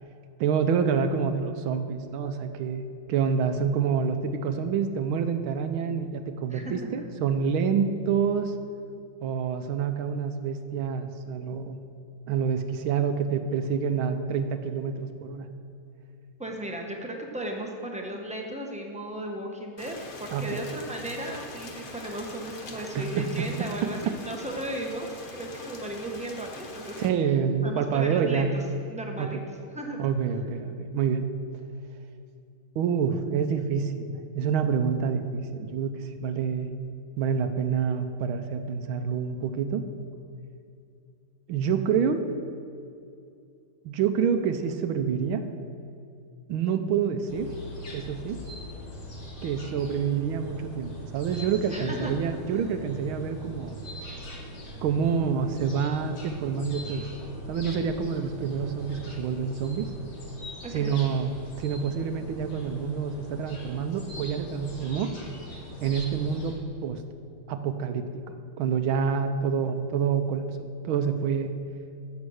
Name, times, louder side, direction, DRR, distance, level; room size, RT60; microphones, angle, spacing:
voice 1, 0.4-8.5 9.2-11.8 12.3-15.5 20.3-20.6 22.8-23.5 23.8-24.1 27.0-28.5 29.2-29.4 30.0-31.3 32.8-36.7 37.2-39.9 41.5-42.2 43.8-45.4 46.5-47.5 47.9-48.4 49.4-53.8 54.8-57.1 57.5-59.9 60.7-61.3 61.6-65.1 65.8-66.6 66.8-67.0 67.5-71.6, right 6 dB, 80° right, 8 dB, 1.5 m, -27 dB
voice 2, 16.4-27.0 27.6-28.6 28.9-29.4 29.7-30.1 51.7-52.2 60.6-61.0, right 1 dB, 10° right, 1 dB, 0.5 m, -36 dB
Rain, 19.8-27.1, left 2 dB, 65° left, 0.5 m, -43 dB
sound 1, 47.3-66.5, equal, 85° left, 2.9 m, -41 dB
15.0 x 6.1 x 6.4 m, 2.5 s
omnidirectional pair, 2.3 m